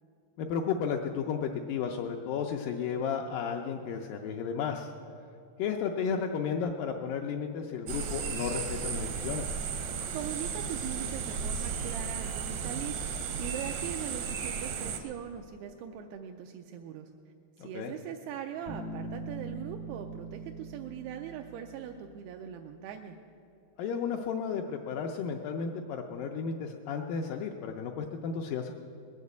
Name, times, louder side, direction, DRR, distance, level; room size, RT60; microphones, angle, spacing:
voice 1, 0.4-4.9 5.6-9.5 17.6-17.9 23.8-28.7, left 6 dB, 80° left, 2 dB, 2.0 m, -33 dB
sound 1, 7.9-15.0, right 6 dB, 70° right, 1.7 m, -34 dB
voice 2, 10.1-13.0 13.4-17.1 17.6-23.2, right 9 dB, 85° right, 4 dB, 2.6 m, -41 dB
Bass guitar, 18.7-22.4, right 2 dB, 40° right, 0.6 m, -42 dB
20.5 x 7.4 x 8.1 m, 2.6 s
omnidirectional pair, 4.5 m